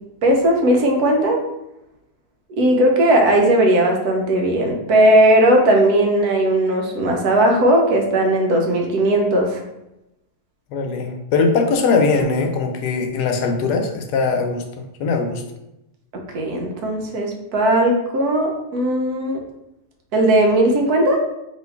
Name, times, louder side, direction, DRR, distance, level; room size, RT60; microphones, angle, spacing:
voice 1, 0.2-1.5 2.6-9.6 16.3-19.4 20.1-21.2, right 1 dB, 70° right, 1 dB, 1.2 m, -17 dB
voice 2, 10.7-14.6 15.0-15.4, left 4 dB, 80° left, 3 dB, 1.2 m, -20 dB
3.1 x 2.7 x 4.4 m, 0.90 s
omnidirectional pair, 1.8 m